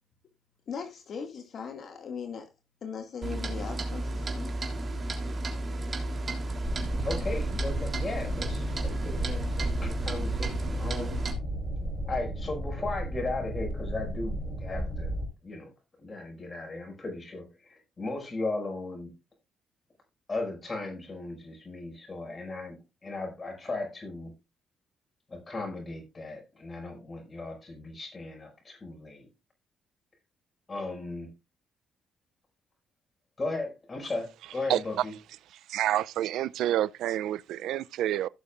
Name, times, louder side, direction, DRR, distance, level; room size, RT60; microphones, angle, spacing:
voice 1, 0.7-2.4 2.8-4.5, left 6 dB, 60° left, 2.0 m, -39 dB
Clock, 3.2-11.3, right 2 dB, 35° right, 3.2 m, -33 dB
sound 1, 6.6-15.3, right 1 dB, 10° right, 4.8 m, -34 dB
voice 2, 7.0-11.2 12.1-15.2 15.4-15.7 16.0-19.1 20.3-24.3 25.3-29.3 30.7-31.3 33.4-35.1, left 2 dB, 30° left, 5.6 m, -36 dB
voice 3, 35.7-38.3, right 12 dB, 85° right, 0.4 m, -28 dB
16.5 x 6.7 x 2.4 m
cardioid pair, 90°, 0 cm